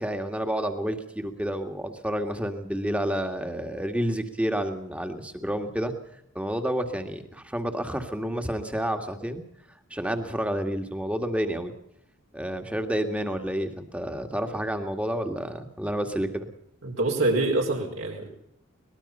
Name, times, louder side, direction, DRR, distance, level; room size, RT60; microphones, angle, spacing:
voice 1, 0.0-5.9 6.4-9.4 9.9-11.7 12.3-16.5, equal, 5° right, 6 dB, 2.0 m, -29 dB
voice 2, 16.8-18.3, right 2 dB, 70° right, 0 dB, 5.2 m, -25 dB
23.5 x 20.5 x 5.6 m, 0.75 s
head